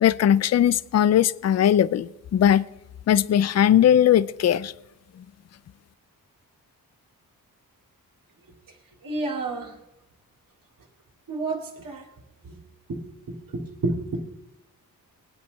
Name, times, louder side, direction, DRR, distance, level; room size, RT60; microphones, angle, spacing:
voice 1, 0.0-2.7 3.1-4.7, left 10 dB, 45° left, 0.4 m, -19 dB
voice 2, 9.0-9.7 11.3-12.0 12.4-12.6 12.9-14.3, right 2 dB, 65° right, 2.7 m, -30 dB
21.0 x 9.1 x 4.1 m
cardioid pair, 95°, 36 cm